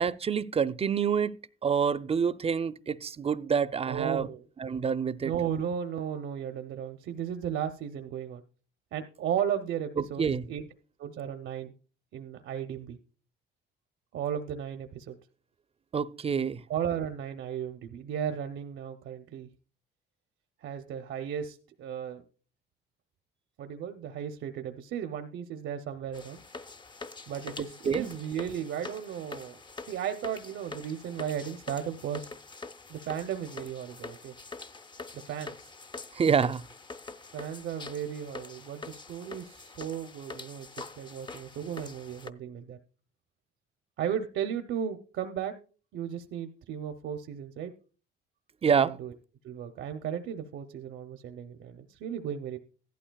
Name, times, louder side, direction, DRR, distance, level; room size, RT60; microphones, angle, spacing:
voice 1, 0.0-1.4 1.6-4.3 4.6-5.3 10.0-10.5 15.9-16.6 27.8-28.0 36.1-36.6 48.6-49.0, right 6 dB, 30° right, 0.5 m, -27 dB
voice 2, 3.9-4.4 5.2-8.4 8.9-10.7 11.0-11.7 12.1-13.0 14.1-15.2 16.7-19.5 20.6-22.2 23.6-26.4 27.3-29.6 29.9-32.3 32.9-34.3 35.2-35.5 37.3-42.8 44.0-45.5 45.9-47.7 48.7-49.1 49.4-52.6, right 9 dB, 70° right, 0.7 m, -35 dB
sound 1, 26.1-42.3, left 3 dB, 25° left, 0.6 m, -45 dB
15.5 x 11.5 x 2.3 m
cardioid pair, 90°, 20 cm